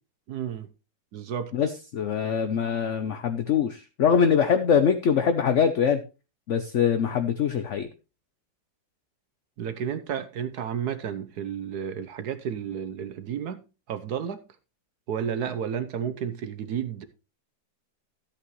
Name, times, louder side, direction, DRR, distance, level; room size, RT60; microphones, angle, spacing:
voice 1, 0.3-0.7 1.1-1.5 9.6-14.4 15.1-17.1, right 8 dB, 65° right, 1.2 m, -32 dB
voice 2, 1.5-6.0 6.5-7.9, left 7 dB, 60° left, 0.8 m, -23 dB
13.5 x 8.6 x 3.1 m
omnidirectional pair, 2.0 m